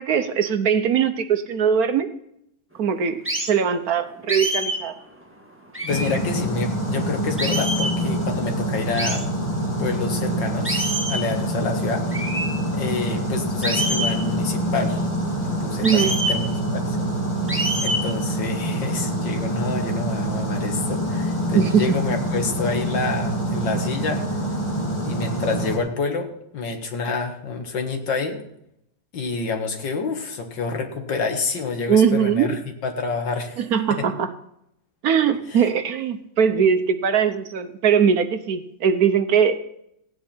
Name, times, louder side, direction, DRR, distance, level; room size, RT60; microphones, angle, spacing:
voice 1, 0.0-2.1 2.8-4.9 15.8-16.2 21.5-22.0 31.9-32.6 33.6-34.3 35.0-39.5, right 7 dB, 65° right, 9 dB, 1.2 m, -20 dB
sound 1, 3.3-3.5 4.3-4.8 5.7-6.2 7.4-8.0 9.0-9.3 10.6-11.3 12.1-12.5 13.6-14.2 15.8-16.4 17.5-18.1, right 1 dB, 5° right, 1.9 m, -26 dB
voice 2, 5.8-9.3 9.8-12.2 12.7-15.0 15.4-17.0 17.8-24.4 25.0-28.4 29.1-33.6 33.9-34.1 35.5-35.7, left 4 dB, 85° left, 4 dB, 2.3 m, -28 dB
sound 2, 5.9-25.8, right 1 dB, 15° left, 2.5 m, -26 dB
16.5 x 9.3 x 4.4 m, 0.77 s
omnidirectional pair, 1.9 m